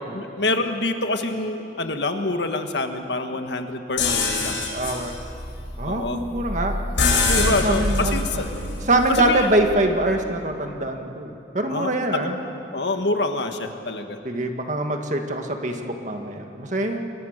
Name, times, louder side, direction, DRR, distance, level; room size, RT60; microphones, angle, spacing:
voice 1, 0.1-4.6 5.8-6.2 7.2-8.6 9.1-9.5 11.7-12.3 12.7-14.2, left 2 dB, 65° left, 6 dB, 1.7 m, -26 dB
sound 1, 4.0-9.8, left 3 dB, 85° left, 7.3 m, -25 dB
voice 2, 4.7-5.2 5.8-6.8 7.3-8.3 8.9-12.4 14.2-17.0, right 1 dB, 40° right, 4 dB, 1.9 m, -24 dB
29.5 x 22.0 x 6.7 m, 2.7 s
head